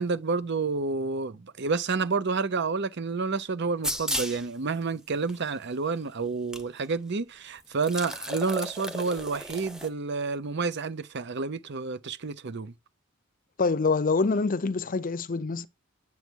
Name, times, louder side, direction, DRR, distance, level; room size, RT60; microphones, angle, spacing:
voice 1, 0.0-12.7, right 4 dB, 55° right, 0.7 m, -29 dB
sound 1, 3.8-4.4 5.3-5.4 6.5-6.6 6.9-7.0 7.7-9.9, equal, 5° right, 0.9 m, -34 dB
voice 2, 13.6-15.7, left 4 dB, 40° left, 0.6 m, -25 dB
9.5 x 7.0 x 4.5 m
head